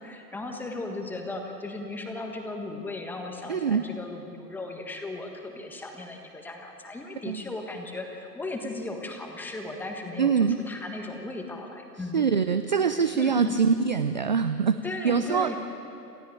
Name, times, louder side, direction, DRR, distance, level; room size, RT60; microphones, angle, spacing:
voice 1, 0.0-12.3 13.1-13.6 14.8-15.6, left 2 dB, 5° left, 2 dB, 1.5 m, -36 dB
voice 2, 3.5-3.9 7.3-7.4 10.2-10.6 12.1-14.8 15.0-15.5, right 6 dB, 30° right, 10 dB, 0.5 m, -24 dB
27.5 x 15.0 x 9.0 m, 2.7 s
hypercardioid pair, 145°, 48 cm